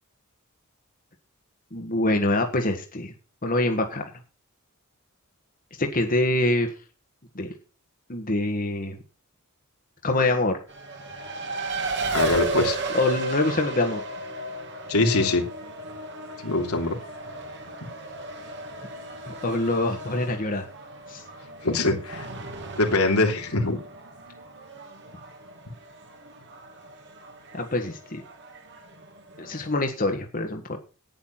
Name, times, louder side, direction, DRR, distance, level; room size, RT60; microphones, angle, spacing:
voice 1, 1.7-3.1 3.4-4.0 5.8-6.7 7.3-7.5 8.1-9.0 10.0-10.6 12.9-14.0 19.2-20.6 21.1-21.2 27.5-28.2 29.4-30.8, left 2 dB, 40° left, 4 dB, 1.6 m, -25 dB
Race car auto racing, 10.7-29.8, right 2 dB, 55° right, 2.6 m, -35 dB
voice 2, 12.1-12.8 14.9-15.4 16.4-17.0 21.6-22.3 22.8-23.8, left 2 dB, 85° left, 2 dB, 3.2 m, -23 dB
10.5 x 9.8 x 5.8 m, 0.35 s
head